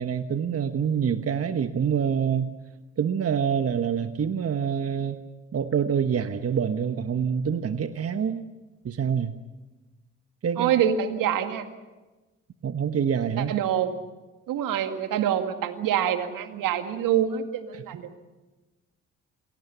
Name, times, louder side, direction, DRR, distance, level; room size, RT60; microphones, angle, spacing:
voice 1, 0.0-2.5 3.0-5.2 5.5-8.4 8.8-9.3 10.4-10.7 12.6-13.5 17.7-17.8, right 7 dB, 40° right, 10 dB, 1.3 m, -26 dB
voice 2, 10.6-11.7 13.4-14.0 14.5-18.1, right 9 dB, 65° right, 8 dB, 2.1 m, -26 dB
28.0 x 21.5 x 7.0 m, 1.2 s
hypercardioid pair, 45°, 35 cm